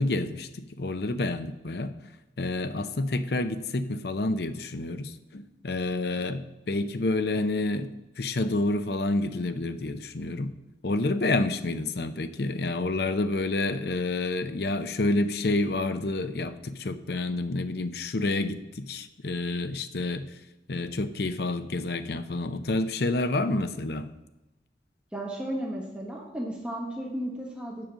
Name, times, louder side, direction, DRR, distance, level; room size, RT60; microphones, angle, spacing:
voice 1, 0.0-1.9 2.4-7.9 8.2-10.5 10.8-20.3 20.7-24.1, left 2 dB, 60° left, 10 dB, 0.6 m, -29 dB
voice 2, 25.1-27.9, right 1 dB, 5° right, -2 dB, 1.2 m, -34 dB
7.6 x 5.2 x 7.4 m, 1.0 s
head